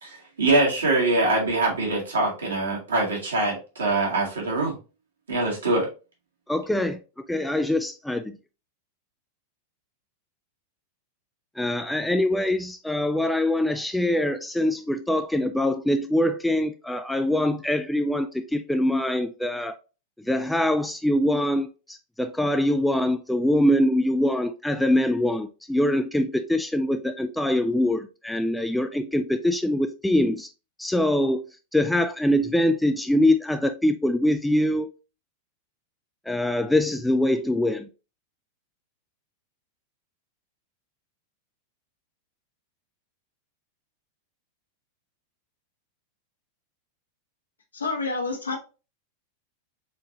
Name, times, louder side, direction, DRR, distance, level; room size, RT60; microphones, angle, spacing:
voice 1, 0.0-4.7 5.3-5.9, right 2 dB, 70° right, 1.9 m, -23 dB
voice 2, 6.5-7.0 7.3-8.2 11.6-19.7 20.3-30.5 30.8-31.4 31.7-34.9 36.3-37.9, left 1 dB, 5° left, 0.3 m, -23 dB
voice 3, 47.7-48.6, left 3 dB, 75° left, 1.0 m, -28 dB
4.3 x 3.7 x 2.8 m
figure-of-eight pair, 90°, 0 cm